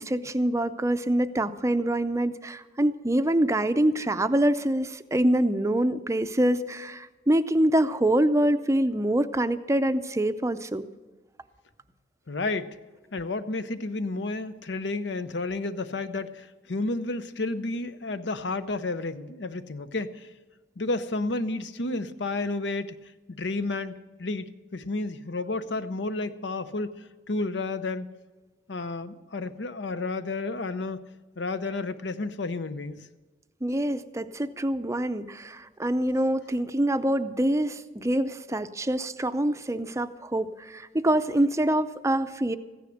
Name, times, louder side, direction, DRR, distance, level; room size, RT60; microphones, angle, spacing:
voice 1, 0.0-10.8 33.6-42.6, right 1 dB, 15° right, 11 dB, 0.5 m, -25 dB
voice 2, 12.3-12.8 13.1-20.3 20.8-22.9 23.3-23.9 24.2-26.9 27.3-28.1 28.7-31.0 31.4-33.1, left 2 dB, 75° left, 12 dB, 0.8 m, -31 dB
15.0 x 10.0 x 6.4 m, 1.2 s
head